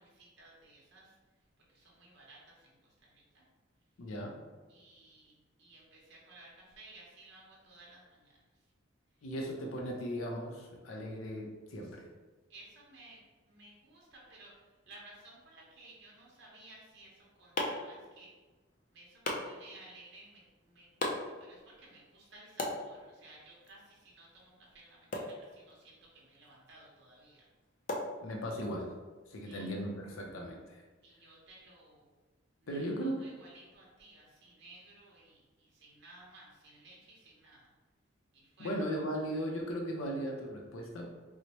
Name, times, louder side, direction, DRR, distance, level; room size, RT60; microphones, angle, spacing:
voice 1, 0.0-3.4 4.7-8.7 9.1-9.3 12.5-13.2 13.4-18.3 18.9-27.5 29.4-29.7 31.0-32.1 32.6-37.7 38.3-38.7, right 2 dB, 55° right, -4 dB, 0.9 m, -57 dB
voice 2, 4.0-4.4 9.2-12.1 28.2-29.0 29.3-30.8 32.7-33.2 38.6-41.1, equal, 90° left, 0 dB, 0.6 m, -37 dB
sound 1, 16.9-28.8, left 2 dB, 40° left, 0.4 m, -42 dB
4.3 x 2.0 x 2.9 m, 1.3 s
head